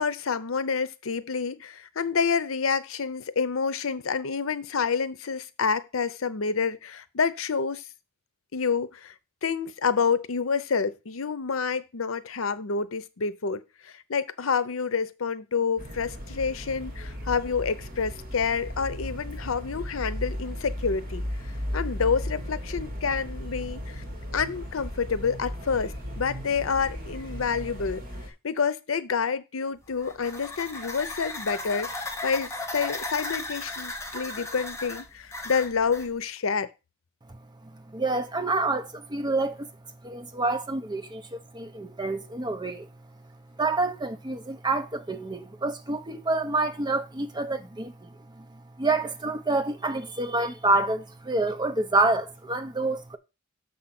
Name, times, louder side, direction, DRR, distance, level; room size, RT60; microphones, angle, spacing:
voice 1, 0.0-7.8 8.5-9.1 9.4-13.6 14.1-21.2 21.7-24.0 24.3-28.0 28.4-36.7, left 5 dB, 80° left, 0.7 m, -28 dB
sound 1, 15.8-28.3, equal, 45° right, 2.4 m, -36 dB
sound 2, 29.8-36.1, left 2 dB, 15° left, 1.2 m, -36 dB
voice 2, 37.3-39.7 40.0-42.9 43.6-48.1 48.4-53.2, right 2 dB, 20° right, 0.8 m, -28 dB
6.8 x 5.1 x 5.9 m
head